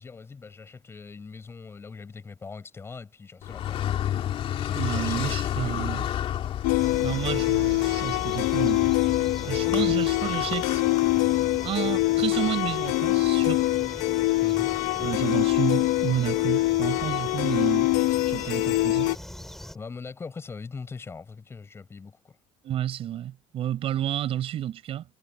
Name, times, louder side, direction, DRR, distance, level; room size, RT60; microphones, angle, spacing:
voice 1, 0.0-4.1 4.7-6.1 9.6-9.9 14.4-14.8 19.7-22.4, left 4 dB, 20° left, 7.5 m, -41 dB
Car, 3.4-11.7, left 11 dB, 45° left, 2.9 m, -32 dB
voice 2, 4.7-6.1 7.0-8.9 9.4-10.8 11.6-13.6 15.0-17.9 18.3-19.1 22.6-25.0, right 11 dB, 45° right, 5.6 m, -30 dB
sound 1, 6.6-19.2, left 19 dB, 85° left, 0.8 m, -24 dB
sound 2, 6.8-19.8, left 1 dB, ahead, 3.4 m, -42 dB
cardioid pair, 165°, 13 cm